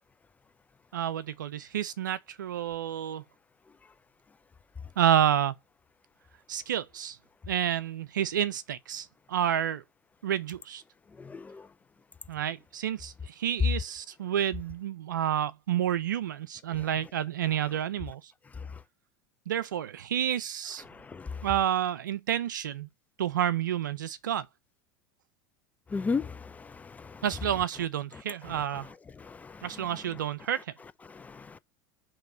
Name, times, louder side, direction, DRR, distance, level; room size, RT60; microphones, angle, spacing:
voice 1, 0.9-3.2 5.0-5.5 6.5-7.2 7.5-9.8 10.2-10.8 12.3-18.2 19.5-20.8 21.4-22.9 23.2-24.5 27.2-28.9 29.6-30.6, right 10 dB, 85° right, 0.5 m, -29 dB
voice 2, 11.2-11.7 18.6-18.8 20.8-21.5 25.9-27.2 28.4-30.0 31.1-31.6, left 4 dB, 15° left, 0.3 m, -37 dB
4.5 x 3.1 x 2.6 m
hypercardioid pair, 90°, 10 cm